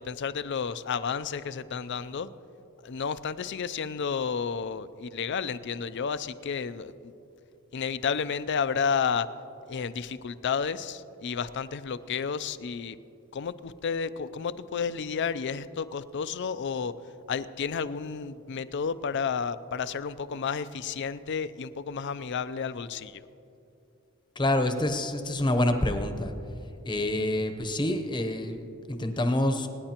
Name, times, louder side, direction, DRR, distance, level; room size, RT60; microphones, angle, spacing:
voice 1, 0.0-2.3 2.8-7.1 7.7-9.3 9.7-13.0 13.3-16.9 17.3-23.2, left 6 dB, 55° left, 14 dB, 0.4 m, -31 dB
voice 2, 24.4-26.3 26.9-29.7, left 1 dB, 20° left, 7 dB, 0.8 m, -27 dB
26.5 x 9.9 x 2.9 m, 2.7 s
head